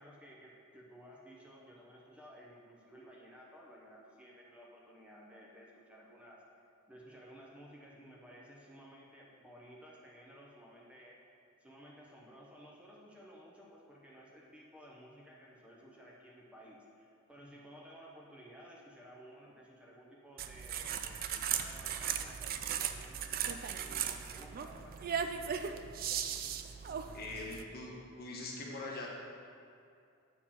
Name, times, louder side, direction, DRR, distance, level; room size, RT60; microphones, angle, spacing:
voice 1, 0.0-6.4 6.9-11.2 11.6-25.2, equal, 5° right, -4 dB, 0.8 m, -55 dB
sound 1, 20.4-27.6, right 8 dB, 40° right, 0.3 m, -37 dB
voice 2, 27.1-27.9 28.2-29.1, left 2 dB, 45° left, -3 dB, 1.2 m, -42 dB
7.3 x 4.5 x 5.7 m, 2.4 s
head